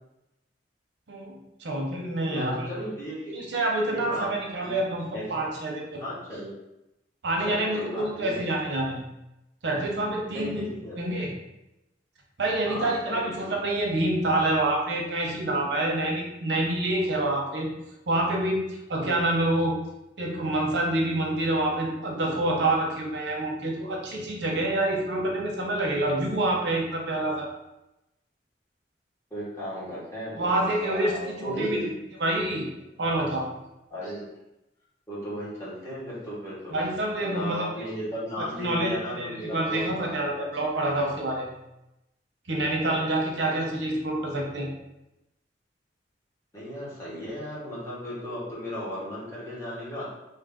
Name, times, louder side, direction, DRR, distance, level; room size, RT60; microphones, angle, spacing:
voice 1, 1.1-2.7 3.3-6.0 7.2-9.1 9.6-10.7 11.0-11.3 12.4-17.7 18.1-19.7 20.2-27.5 30.4-31.1 31.4-31.8 32.2-32.7 33.0-33.5 36.7-37.7 38.4-41.5 42.5-44.7, right 1 dB, 75° right, -1 dB, 0.7 m, -27 dB
voice 2, 2.3-3.4 3.9-4.3 4.6-4.8 5.1-5.3 6.0-6.5 7.4-8.5 10.3-11.0 12.6-13.5 29.3-31.9 33.1-33.3 33.9-34.2 35.1-36.8 37.2-40.7 42.9-43.1 46.5-50.1, equal, 15° left, -9 dB, 1.2 m, -35 dB
2.8 x 2.4 x 3.5 m, 0.92 s
head